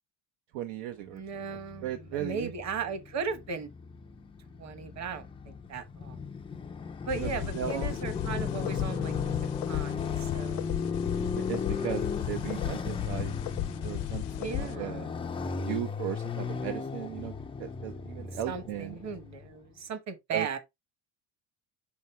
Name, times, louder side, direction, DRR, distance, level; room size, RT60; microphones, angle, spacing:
voice 1, 0.5-1.2 1.5-2.5 7.1-7.9 11.3-13.3 13.8-15.1 15.6-17.3 17.6-19.0 20.3-20.6, right 11 dB, 80° right, 1.0 m, -37 dB
voice 2, 1.1-3.7 4.6-6.2 7.1-9.1 9.7-10.7 11.8-12.1 14.1-15.0 18.2-20.6, right 5 dB, 35° right, 1.2 m, -37 dB
Motorcycle, 1.4-19.5, left 5 dB, 15° left, 0.3 m, -36 dB
sound 1, 7.1-14.8, left 16 dB, 65° left, 0.6 m, -36 dB
5.7 x 5.3 x 3.2 m
cardioid pair, 150°, 45 cm